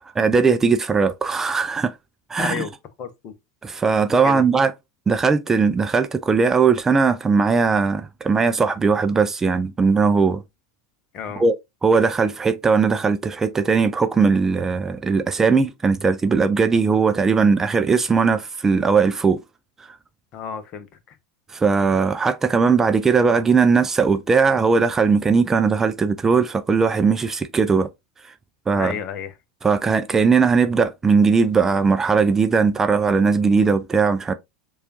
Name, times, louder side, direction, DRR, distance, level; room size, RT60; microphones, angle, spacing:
voice 1, 0.2-1.9 2.3-2.7 3.6-4.7 5.1-10.4 11.4-11.5 11.8-19.4 19.9-20.0 21.5-27.9 28.7-29.0 29.6-34.3, right 5 dB, 15° right, 0.4 m, -19 dB
voice 2, 2.4-2.7 3.0-3.3 4.2-4.5 11.1-11.4 20.3-20.9 28.7-29.3, left 8 dB, 40° left, 0.8 m, -31 dB
6.5 x 2.4 x 2.6 m
figure-of-eight pair, 85°, 3 cm